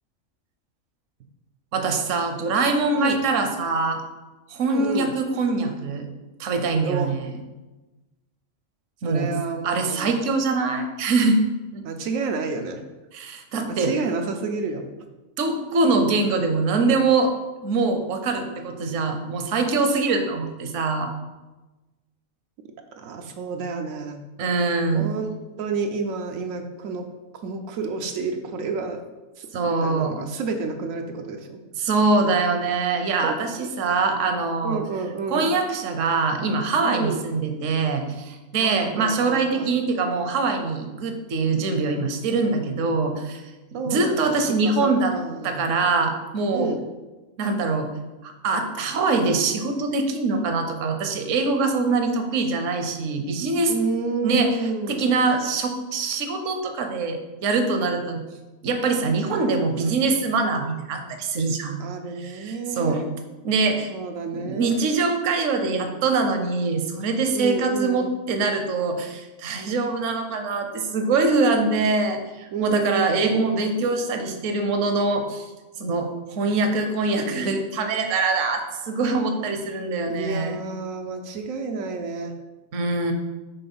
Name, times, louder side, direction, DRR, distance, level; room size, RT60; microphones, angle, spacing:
voice 1, 1.7-4.0 4.5-6.1 6.4-7.4 9.0-9.3 9.6-11.4 11.7-11.8 13.1-14.0 15.4-17.3 17.6-21.1 24.4-25.1 29.5-30.2 31.7-34.8 35.3-43.4 43.7-45.1 45.4-46.7 47.4-47.9 48.2-53.7 54.2-58.2 58.6-61.8 62.2-63.0 63.4-63.9 64.3-75.5 75.8-80.6 82.7-83.1, right 3 dB, 70° right, 6 dB, 1.1 m, -23 dB
voice 2, 4.6-5.1 6.8-7.2 9.0-10.1 11.8-12.8 13.7-14.9 23.0-24.2 24.9-27.1 27.4-29.0 29.4-31.6 33.2-33.7 34.6-35.5 36.8-37.2 38.6-39.7 43.7-44.4 44.8-45.6 46.5-46.8 53.7-55.1 61.8-63.0 63.9-64.9 67.3-68.1 72.5-73.8 80.0-82.3, right 4 dB, 90° right, 4 dB, 1.0 m, -30 dB
5.9 x 3.7 x 5.4 m, 1.1 s
omnidirectional pair, 1.4 m